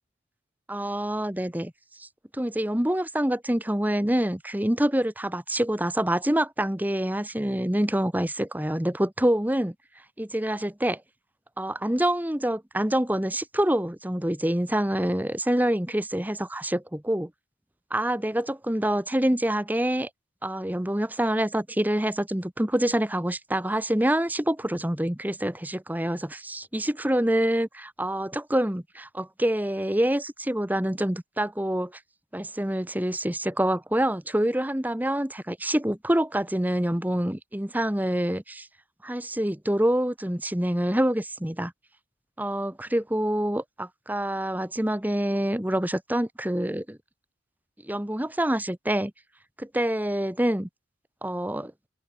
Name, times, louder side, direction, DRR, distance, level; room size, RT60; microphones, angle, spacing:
voice 1, 0.7-1.7 2.0-2.1 2.3-9.7 10.2-11.0 11.6-17.3 17.9-20.1 20.4-31.9 32.3-38.7 39.0-41.7 42.4-47.0 47.8-49.1 49.6-50.7 51.2-51.7, right 1 dB, 10° right, 1.1 m, -26 dB
open air
head